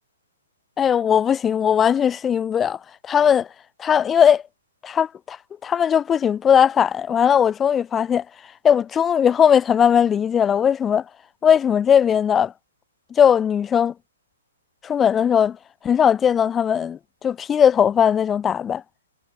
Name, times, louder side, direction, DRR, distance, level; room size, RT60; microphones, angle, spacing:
voice 1, 0.8-2.8 3.0-3.5 3.8-4.4 4.8-5.4 5.6-8.2 8.6-11.0 11.4-12.5 13.1-13.9 14.8-15.6 15.8-17.0 17.2-18.8, left 8 dB, 15° left, 1.5 m, -18 dB
hypercardioid pair, 140°, 0 cm